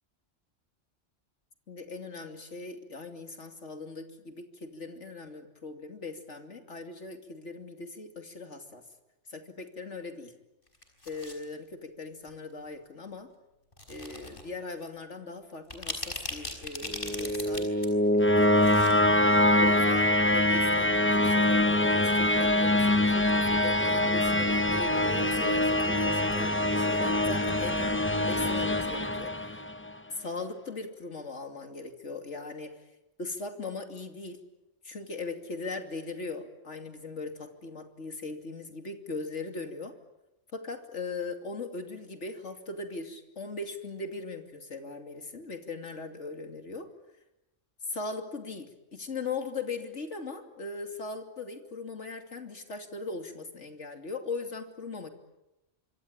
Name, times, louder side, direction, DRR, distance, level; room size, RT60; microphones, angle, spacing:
voice 1, 1.7-8.8 9.3-10.3 11.0-13.3 13.9-17.7 18.1-18.8 19.6-29.6 30.1-32.8 33.2-34.4 34.8-39.9 40.5-46.9 47.9-55.1, left 3 dB, 70° left, 5 dB, 3.1 m, -39 dB
sound 1, 10.7-11.4 12.3-12.5 13.7-14.4 14.8-14.9 15.5-17.9 18.2-18.9 19.2-19.3, left 1 dB, 45° left, 5.6 m, -38 dB
sound 2, 16.9-29.9, left 1 dB, 10° left, 0.9 m, -24 dB
26.0 x 25.0 x 8.8 m, 0.93 s
omnidirectional pair, 1.3 m